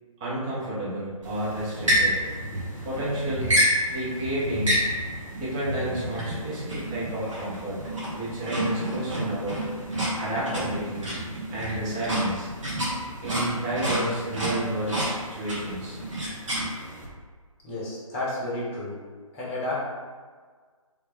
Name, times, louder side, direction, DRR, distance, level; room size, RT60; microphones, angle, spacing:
voice 1, 0.2-2.2 2.8-3.5 3.9-4.9 5.4-7.8 8.1-9.6 10.2-11.1 11.5-12.5 13.2-16.0, right 1 dB, 10° right, -8 dB, 0.4 m, -31 dB
sound 1, 1.2-17.1, equal, 60° right, 1.5 m, -29 dB
voice 2, 17.6-19.0 19.3-19.8, left 2 dB, 15° left, -6 dB, 0.9 m, -31 dB
3.4 x 3.1 x 3.4 m, 1.5 s
figure-of-eight pair, 145°, 18 cm